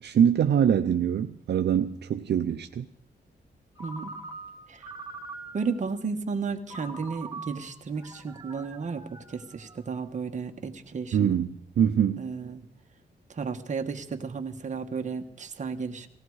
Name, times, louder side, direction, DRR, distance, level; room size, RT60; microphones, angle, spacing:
voice 1, 0.0-2.9 11.1-12.2, right 8 dB, 70° right, 0.6 m, -24 dB
Ringtone, 3.8-5.8 6.7-10.0, right 3 dB, 20° right, 1.7 m, -43 dB
voice 2, 5.5-11.4 12.2-12.6 13.3-16.1, right 5 dB, 45° right, 1.3 m, -33 dB
18.5 x 16.0 x 4.8 m
wide cardioid pair, 145°, 18 cm